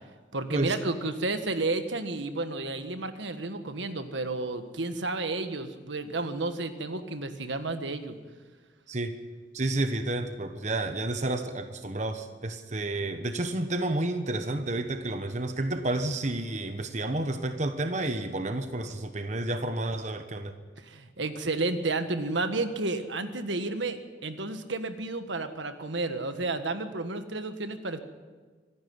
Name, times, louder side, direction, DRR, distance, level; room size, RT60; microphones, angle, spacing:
voice 1, 0.3-8.2 20.8-28.0, right 2 dB, 75° right, 9 dB, 1.5 m, -31 dB
voice 2, 9.5-20.5, right 2 dB, 40° right, 8 dB, 1.1 m, -30 dB
25.5 x 12.0 x 9.6 m, 1.4 s
head